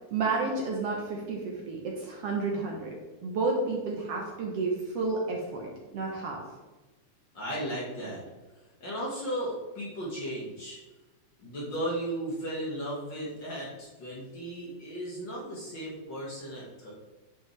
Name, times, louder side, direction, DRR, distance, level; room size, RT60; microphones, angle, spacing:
voice 1, 0.1-3.0 3.2-6.4, right 3 dB, 60° right, -1 dB, 1.8 m, -31 dB
voice 2, 7.3-8.2 8.8-10.8 11.4-16.9, right 1 dB, 45° left, -6 dB, 2.0 m, -35 dB
9.9 x 5.2 x 3.3 m, 1.2 s
omnidirectional pair, 3.4 m